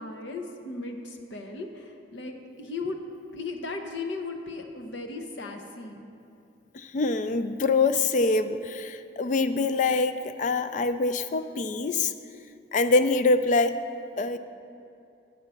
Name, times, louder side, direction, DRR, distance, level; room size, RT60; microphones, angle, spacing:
voice 1, 0.0-3.0 3.3-6.1, left 3 dB, 80° left, 4 dB, 0.8 m, -36 dB
voice 2, 6.7-12.1 12.7-13.8 14.2-14.4, left 3 dB, 40° left, 11 dB, 0.3 m, -24 dB
8.8 x 5.4 x 6.9 m, 2.6 s
head